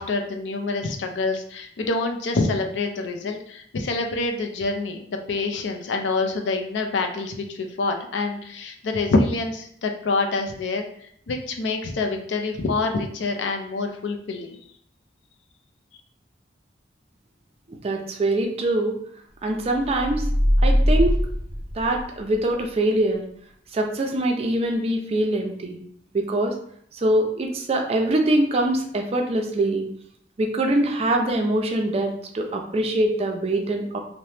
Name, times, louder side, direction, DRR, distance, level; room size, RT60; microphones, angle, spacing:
voice 1, 0.0-10.9 11.3-14.6, left 3 dB, 80° left, 4 dB, 0.4 m, -26 dB
voice 2, 17.7-19.0 19.4-20.3 20.6-21.2 21.8-23.2 23.7-25.8 26.1-26.6 26.9-29.9 30.4-34.0, right 1 dB, 35° right, 3 dB, 0.4 m, -23 dB
sound 1, 19.7-22.4, equal, 55° left, 0.8 m, -21 dB
2.8 x 2.0 x 3.1 m, 0.64 s
head